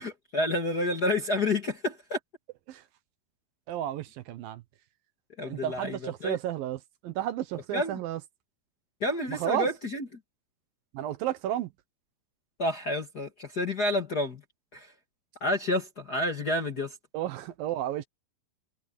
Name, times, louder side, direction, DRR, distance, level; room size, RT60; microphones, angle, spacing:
voice 1, 0.0-2.2 5.4-6.4 7.7-8.0 9.0-10.0 12.6-14.4 14.7-14.9 15.4-16.9, left 1 dB, 35° left, 1.7 m, -29 dB
voice 2, 3.7-4.6 5.5-8.2 9.3-9.7 10.9-11.7 17.1-18.1, right 12 dB, 75° right, 2.7 m, -32 dB
omnidirectional pair, 4.4 m